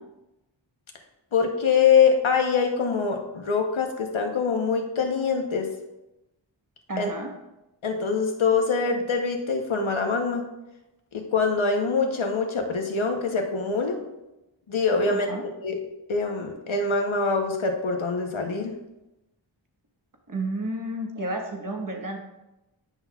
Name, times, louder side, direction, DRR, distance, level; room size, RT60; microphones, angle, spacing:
voice 1, 1.3-5.7 7.0-7.1 7.8-10.5 11.1-14.0 14.7-15.3 15.6-15.8 16.1-18.7, left 5 dB, 85° left, 3 dB, 1.0 m, -24 dB
voice 2, 6.9-7.3 15.1-15.4 20.3-22.2, right 1 dB, 45° right, 2 dB, 1.2 m, -31 dB
10.0 x 5.7 x 2.3 m, 0.96 s
wide cardioid pair, 50°, 46 cm